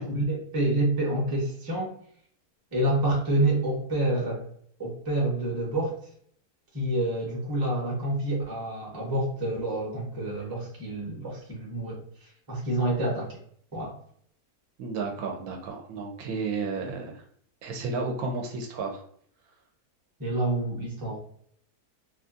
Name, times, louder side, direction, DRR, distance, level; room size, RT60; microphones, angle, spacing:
voice 1, 0.0-1.9 2.7-4.4 4.8-6.1 6.7-13.4 13.7-14.0 20.2-21.2, right 1 dB, 20° right, -3 dB, 0.6 m, -28 dB
voice 2, 14.8-17.2 17.6-19.0, right 4 dB, 75° right, 3 dB, 1.1 m, -32 dB
2.8 x 2.4 x 2.4 m, 0.62 s
omnidirectional pair, 1.6 m